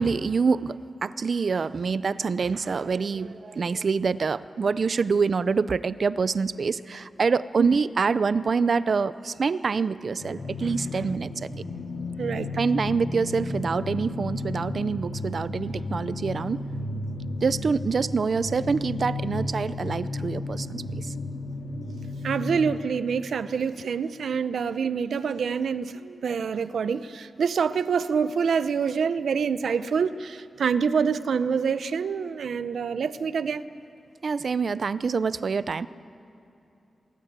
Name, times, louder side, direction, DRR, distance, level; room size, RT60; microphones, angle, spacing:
voice 1, 0.0-11.5 12.6-16.6 17.4-21.1 34.2-35.9, right 5 dB, 45° right, 16 dB, 0.5 m, -26 dB
sound 1, 10.2-22.6, left 2 dB, 85° left, 2.2 m, -33 dB
voice 2, 12.2-12.5 22.2-33.6, right 6 dB, 80° right, 13 dB, 0.7 m, -26 dB
23.5 x 22.5 x 8.2 m, 2.9 s
wide cardioid pair, 180°, 0 cm